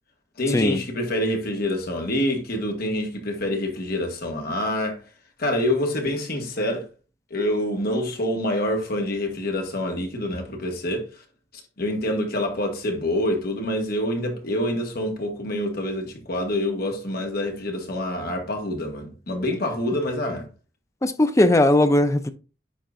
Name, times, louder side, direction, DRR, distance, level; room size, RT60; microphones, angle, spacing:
voice 1, 0.4-5.0 5.4-6.9 7.3-11.1 11.8-20.5, left 1 dB, 60° left, 1.6 m, -26 dB
voice 2, 21.0-22.3, left 1 dB, 15° left, 0.5 m, -18 dB
10.0 x 3.8 x 2.5 m
head